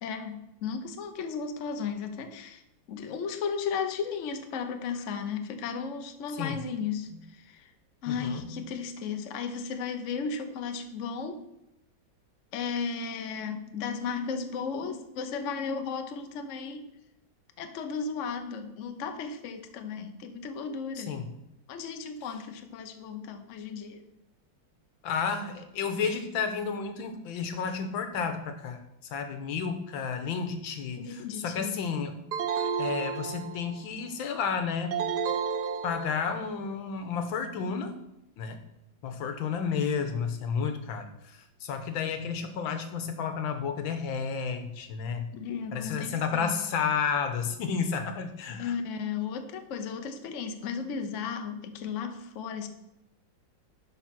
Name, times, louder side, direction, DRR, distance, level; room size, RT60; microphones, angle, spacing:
voice 1, 0.0-2.6 2.9-7.7 8.0-11.5 12.5-16.9 17.6-21.2 21.7-24.0 31.0-31.8 45.3-46.6 48.6-52.7, left 6 dB, 55° left, 7 dB, 1.0 m, -35 dB
voice 2, 8.1-8.6 21.0-21.3 25.0-28.8 29.1-32.1 32.5-35.0 35.8-38.0 38.4-38.6 39.0-45.3 45.7-48.7, left 6 dB, 85° left, 8 dB, 1.7 m, -31 dB
sound 1, 32.3-33.9 34.9-36.5, right 6 dB, 65° right, 1.2 m, -31 dB
11.0 x 4.4 x 5.9 m, 0.87 s
omnidirectional pair, 2.1 m